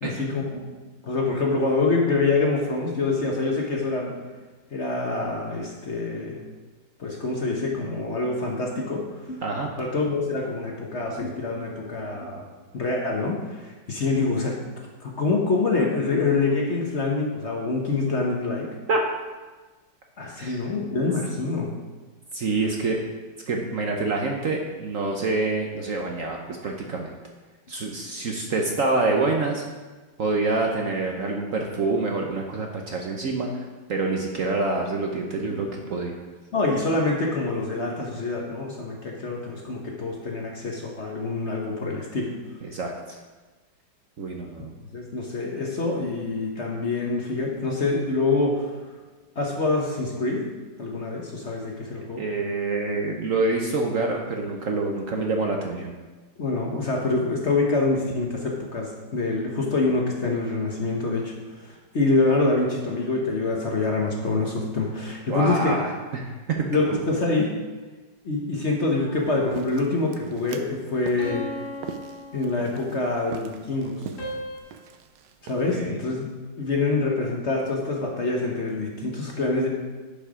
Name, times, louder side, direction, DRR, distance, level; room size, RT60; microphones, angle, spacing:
voice 1, 0.0-0.7 1.0-4.1 4.7-6.5 7.0-9.4 9.8-12.4 12.7-14.6 15.0-18.7 20.2-21.8 35.4-35.6 36.5-42.3 44.9-48.7 49.3-50.5 50.8-52.3 56.4-65.8 66.7-67.5 68.2-71.5 72.3-74.1 75.4-76.3 76.6-79.7, left 3 dB, 45° left, 0 dB, 1.1 m, -26 dB
voice 2, 22.3-23.0 23.5-27.1 27.7-29.6 30.2-36.2 42.7-43.2 44.2-44.7 52.2-55.9 65.3-66.7 66.9-67.0 75.7-76.0, right 3 dB, 55° right, 1 dB, 1.0 m, -26 dB
sound 1, 69.0-70.1 71.2-73.1 74.2-74.6, equal, 80° left, 2.5 m, -37 dB
sound 2, 69.2-75.8, right 7 dB, 75° right, 1.3 m, -43 dB
11.0 x 5.6 x 4.9 m, 1.3 s
omnidirectional pair, 2.0 m